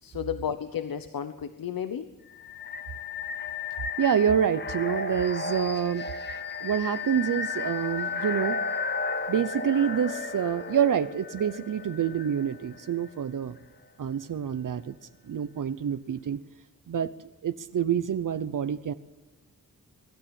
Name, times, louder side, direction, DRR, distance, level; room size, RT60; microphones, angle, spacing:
voice 1, 0.0-2.1, left 8 dB, 85° left, 10 dB, 1.1 m, -33 dB
sound 1, 2.3-13.1, left 4 dB, 30° left, 1.3 m, -34 dB
voice 2, 4.0-6.1 6.6-8.6 9.3-13.6 14.0-14.9 15.2-16.4 16.9-17.1 17.4-18.9, right 8 dB, 65° right, 12 dB, 0.8 m, -27 dB
23.5 x 13.0 x 8.8 m, 1.1 s
wide cardioid pair, 120°, 34 cm